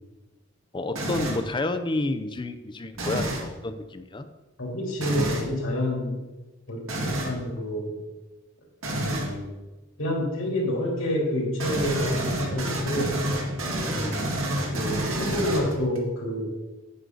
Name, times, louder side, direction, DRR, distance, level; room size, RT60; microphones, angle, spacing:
voice 1, 0.7-4.3 13.9-14.2, left 2 dB, 25° left, 10 dB, 0.5 m, -30 dB
sound 1, 1.0-1.5 2.9-3.5 5.0-5.5 6.9-7.4 8.8-9.3 11.6-16.0, right 1 dB, 85° right, 1.8 m, -29 dB
voice 2, 4.6-6.2 6.7-7.9 8.9-9.5 10.0-13.2 14.0-16.5, equal, 80° left, -2 dB, 3.3 m, -28 dB
9.4 x 8.2 x 3.9 m, 1.1 s
head